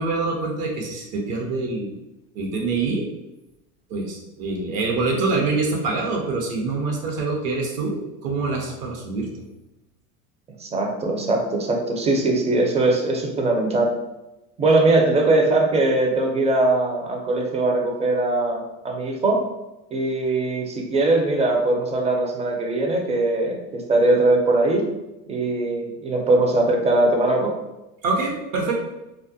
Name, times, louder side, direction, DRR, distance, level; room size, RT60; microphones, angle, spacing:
voice 1, 0.0-2.0 2.3-3.1 3.9-9.3 28.0-28.7, right 3 dB, 65° right, 0 dB, 0.8 m, -25 dB
voice 2, 10.6-13.9 14.6-19.4 19.9-24.8 25.3-27.5, right 2 dB, 15° right, 1 dB, 0.4 m, -21 dB
2.3 x 2.1 x 2.6 m, 0.97 s
hypercardioid pair, 85°, 43 cm